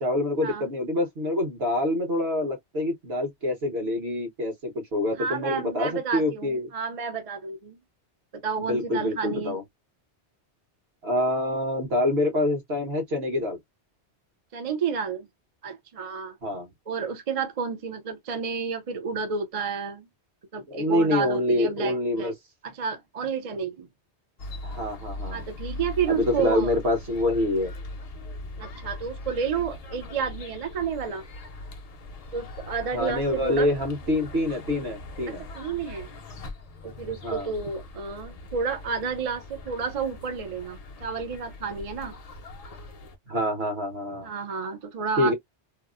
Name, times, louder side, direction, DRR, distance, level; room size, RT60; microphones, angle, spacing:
voice 1, 0.0-6.7 8.6-9.6 11.0-13.6 16.4-16.7 20.7-22.3 24.6-25.4 26.1-27.7 32.9-35.4 37.2-37.5 43.3-44.3 45.2-45.3, left 1 dB, 65° right, 1.3 m, -26 dB
voice 2, 5.2-7.8 8.3-9.6 14.5-15.3 15.6-16.4 16.9-20.1 20.5-22.3 22.6-23.9 25.3-26.8 28.6-31.3 32.3-33.7 35.3-36.1 36.8-42.2 44.2-45.3, right 6 dB, 45° right, 0.5 m, -31 dB
sound 1, 24.4-43.2, left 2 dB, 45° left, 0.5 m, -41 dB
2.9 x 2.0 x 2.3 m
omnidirectional pair, 1.2 m